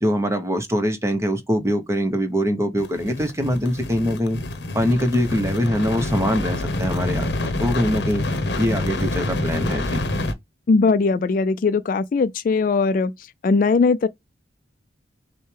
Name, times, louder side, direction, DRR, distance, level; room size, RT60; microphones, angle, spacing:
voice 1, 0.0-4.4 4.7-8.3 8.6-10.0, equal, 15° right, 0.8 m, -23 dB
sound 1, 2.8-10.3, left 2 dB, 65° left, 0.8 m, -27 dB
voice 2, 10.7-14.1, left 4 dB, 45° left, 0.3 m, -20 dB
6.4 x 2.1 x 3.2 m
head